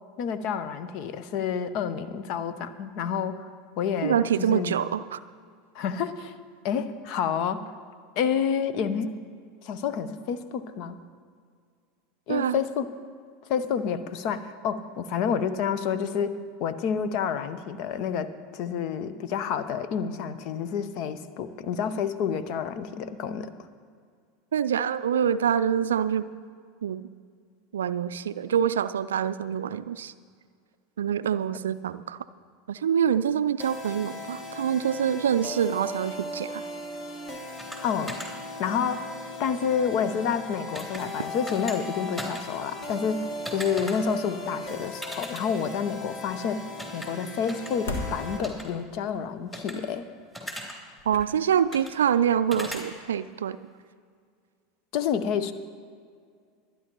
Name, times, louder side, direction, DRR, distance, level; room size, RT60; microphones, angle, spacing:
voice 1, 0.2-3.5 3.8-4.8 5.7-6.4 6.6-7.6 8.2-9.2 9.6-11.0 12.3-12.9 13.5-23.5 37.8-38.2 38.6-39.1 39.4-46.7 46.9-50.1 54.9-55.5, left 7 dB, 50° left, 13 dB, 0.8 m, -29 dB
voice 2, 4.0-5.2 12.3-12.6 24.5-26.3 26.8-27.1 27.7-30.1 31.0-32.2 32.7-36.6 51.1-53.6, right 8 dB, 75° right, 15 dB, 0.4 m, -25 dB
sound 1, 33.6-48.4, left 1 dB, 35° left, 1.8 m, -38 dB
sound 2, 37.6-37.8 38.1-38.3 40.7-41.0 41.5-41.8 42.2-42.4 43.5-43.9 45.0-45.4 46.8-47.1 47.5-47.7 48.4-48.6 49.5-49.7 50.3-50.7 51.7-51.9 52.5-52.8, equal, 15° left, 3.1 m, -37 dB
sound 3, 47.4-49.0 50.6-50.7 51.0-51.9 52.3-52.5, left 2 dB, 70° left, 1.6 m, -37 dB
24.0 x 10.0 x 3.0 m, 2.1 s
figure-of-eight pair, 80°, 0 cm